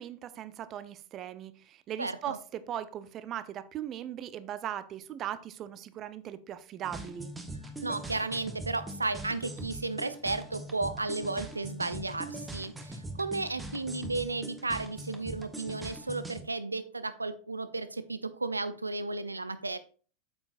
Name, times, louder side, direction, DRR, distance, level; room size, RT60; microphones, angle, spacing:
voice 1, 0.0-7.3, right 11 dB, 30° right, 0.5 m, -39 dB
voice 2, 2.0-2.4 7.8-19.8, right 3 dB, 80° right, 0.4 m, -34 dB
sound 1, 6.8-16.4, right 2 dB, 10° right, 1.1 m, -42 dB
8.6 x 7.2 x 2.5 m
figure-of-eight pair, 90°, 0 cm